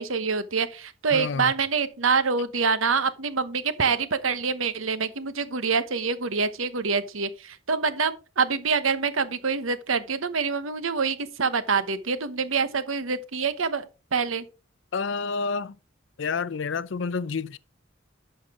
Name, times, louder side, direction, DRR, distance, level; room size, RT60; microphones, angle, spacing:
voice 1, 0.0-14.4, right 5 dB, 90° right, 1.0 m, -26 dB
voice 2, 1.1-1.5 14.9-15.7 16.2-17.6, left 4 dB, 65° left, 0.5 m, -29 dB
11.0 x 6.6 x 3.7 m
head